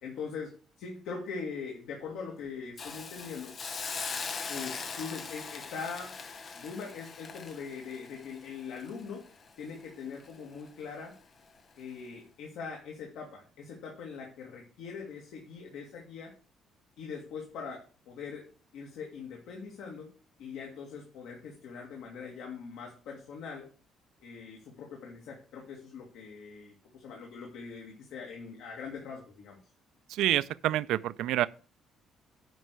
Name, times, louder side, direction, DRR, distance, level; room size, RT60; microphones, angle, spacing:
voice 1, 0.0-3.6 4.5-6.2 6.6-9.3 9.6-11.2 11.8-16.3 17.0-18.5 18.7-20.1 20.4-23.7 24.2-29.6, left 5 dB, 85° left, 2.2 m, -42 dB
Hiss, 2.8-9.8 10.2-10.4, left 5 dB, 30° left, 0.8 m, -41 dB
voice 2, 30.1-31.5, right 14 dB, 85° right, 0.4 m, -27 dB
9.3 x 5.5 x 6.5 m
cardioid pair, 175°, 0 cm